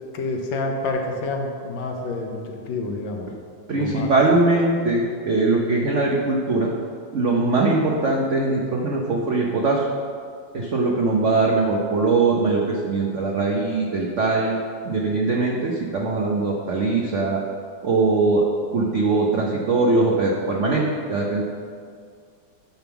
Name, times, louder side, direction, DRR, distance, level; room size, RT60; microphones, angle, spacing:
voice 1, 0.1-3.3 3.7-4.1, left 2 dB, 70° left, 2 dB, 1.5 m, -28 dB
voice 2, 3.7-6.7 7.1-9.8 10.5-14.5 14.8-17.4 17.8-18.4 18.7-21.4, right 3 dB, 70° right, -1 dB, 0.6 m, -21 dB
10.5 x 3.6 x 6.9 m, 2.2 s
omnidirectional pair, 2.3 m